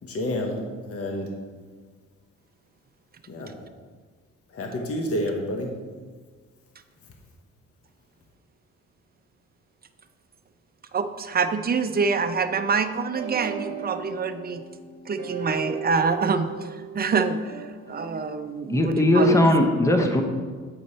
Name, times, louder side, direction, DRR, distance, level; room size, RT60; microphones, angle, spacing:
voice 1, 0.0-1.3 3.3-3.5 4.5-5.7 7.0-7.1, left 1 dB, 50° left, 2 dB, 1.2 m, -29 dB
voice 2, 10.9-14.6 15.1-19.5, right 5 dB, 30° right, 8 dB, 0.6 m, -26 dB
sound 1, 13.1-18.2, right 6 dB, 65° right, 1.0 m, -36 dB
voice 3, 18.7-20.2, left 1 dB, 10° left, 4 dB, 0.8 m, -19 dB
8.8 x 5.0 x 4.2 m, 1.5 s
cardioid pair, 90°, 30 cm